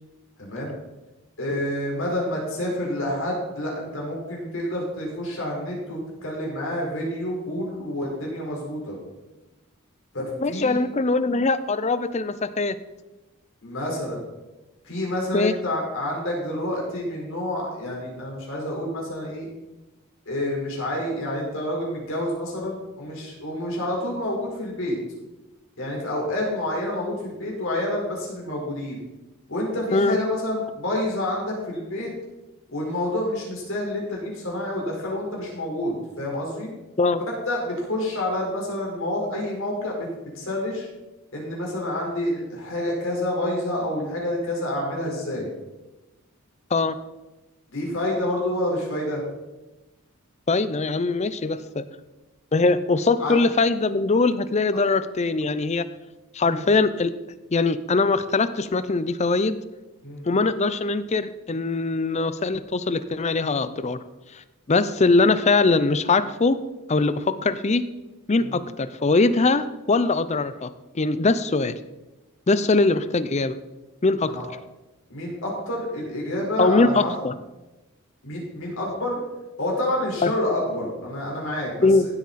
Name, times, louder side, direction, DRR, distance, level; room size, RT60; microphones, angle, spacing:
voice 1, 0.4-0.7 1.4-9.0 10.1-10.8 13.6-14.2 14.8-19.5 20.2-25.0 25.8-29.0 29.5-32.1 32.7-36.7 37.5-40.1 40.3-40.9 41.3-45.5 47.7-49.2 53.2-53.5 54.7-54.8 56.4-56.6 60.0-60.2 68.4-68.6 74.2-74.4 75.1-77.1 78.2-79.2 79.6-81.9, left 1 dB, 65° left, -2 dB, 4.6 m, -28 dB
voice 2, 10.4-12.8 15.3-15.5 29.9-30.2 37.0-37.2 46.7-47.0 50.5-51.9 52.5-55.9 56.3-57.1 57.5-59.6 60.3-64.0 64.7-66.6 66.9-67.8 68.3-70.7 70.9-71.8 72.5-73.6 74.0-74.3 76.6-77.3 80.2-80.3 81.8-82.1, left 3 dB, 30° left, 13 dB, 0.5 m, -21 dB
16.0 x 8.3 x 4.2 m, 1.1 s
head